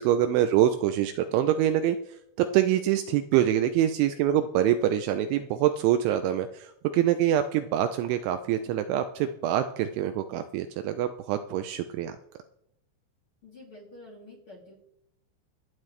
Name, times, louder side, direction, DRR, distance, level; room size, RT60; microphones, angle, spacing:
voice 1, 0.0-2.0 2.4-12.2, right 11 dB, 80° right, 8 dB, 2.8 m, -25 dB
voice 2, 13.4-14.8, left 1 dB, 35° left, -1 dB, 2.7 m, -48 dB
25.0 x 9.2 x 3.2 m, 0.79 s
omnidirectional pair, 5.7 m